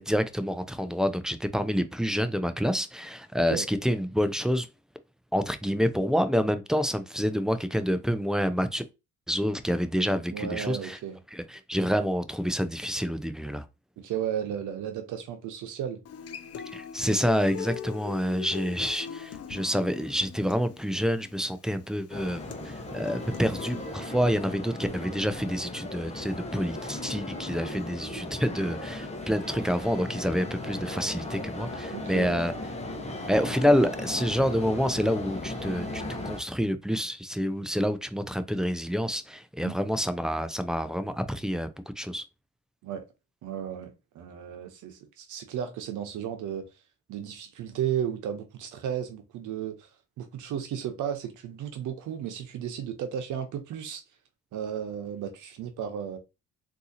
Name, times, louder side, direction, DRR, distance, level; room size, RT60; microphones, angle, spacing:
voice 1, 0.0-4.7 5.3-8.8 9.3-11.0 11.3-13.6 16.7-32.5 33.3-41.7 42.0-42.2, equal, ahead, 0.4 m, -28 dB
voice 2, 10.3-11.2 14.0-16.0 31.9-32.5 39.6-39.8 42.8-43.1 43.4-46.7 47.1-49.9 50.2-54.0 54.5-56.2, right 9 dB, 80° right, 0.9 m, -34 dB
Human voice / Acoustic guitar, 16.1-24.1, left 8 dB, 55° left, 0.6 m, -41 dB
sound 1, 22.1-36.4, left 2 dB, 20° left, 0.9 m, -37 dB
3.6 x 2.8 x 2.8 m
cardioid pair, 90°, 30 cm